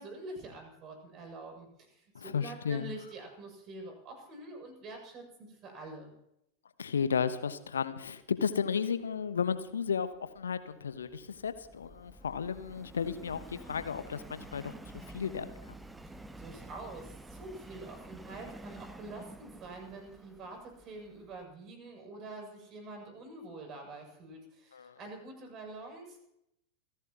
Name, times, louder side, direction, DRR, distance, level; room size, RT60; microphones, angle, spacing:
voice 1, 0.0-6.1 16.0-26.2, right 2 dB, 35° right, 3 dB, 7.6 m, -46 dB
voice 2, 2.1-2.9 6.8-15.5 24.7-24.9, left 6 dB, 70° left, 12 dB, 1.1 m, -34 dB
Subway metro underground, 10.1-21.4, right 1 dB, 5° right, 1.1 m, -50 dB
28.5 x 16.0 x 3.0 m, 0.79 s
figure-of-eight pair, 90°, 0 cm